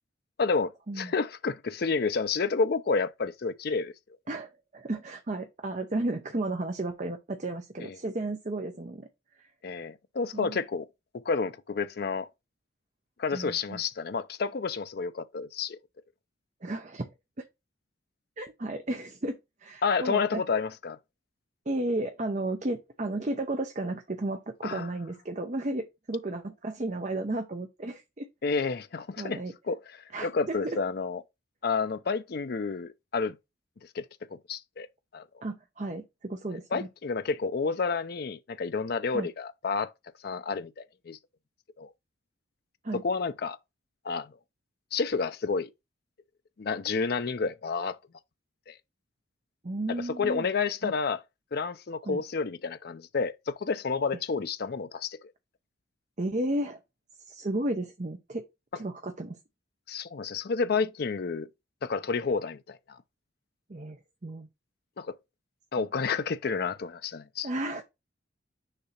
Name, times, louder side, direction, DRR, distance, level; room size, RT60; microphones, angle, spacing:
voice 1, 0.4-3.9 7.8-7.9 9.6-10.9 11.3-12.3 13.2-15.8 19.8-21.0 24.6-24.9 28.4-29.4 29.7-29.8 30.2-31.2 31.6-33.4 33.9-34.0 34.3-34.9 35.1-35.2 36.7-39.9 40.2-41.2 41.8-41.9 43.0-43.6 44.0-44.3 44.9-45.7 46.6-48.0 48.7-48.8 50.2-51.2 51.5-55.2 59.9-61.5 61.8-63.0 65.0-65.1 65.7-67.5, left 4 dB, 50° left, 0.4 m, -30 dB
voice 2, 4.3-9.1 9.4-9.5 10.3-10.6 13.3-13.8 16.6-17.1 17.4-17.5 18.4-20.4 21.7-28.3 29.2-29.5 30.1-30.8 35.4-36.9 39.1-39.3 42.8-43.0 49.6-50.5 50.8-50.9 52.0-52.2 56.2-56.8 57.3-58.4 58.7-59.4 63.7-64.5 65.8-65.9 67.4-67.8, right 2 dB, 35° right, 0.7 m, -33 dB
6.6 x 2.8 x 5.7 m
head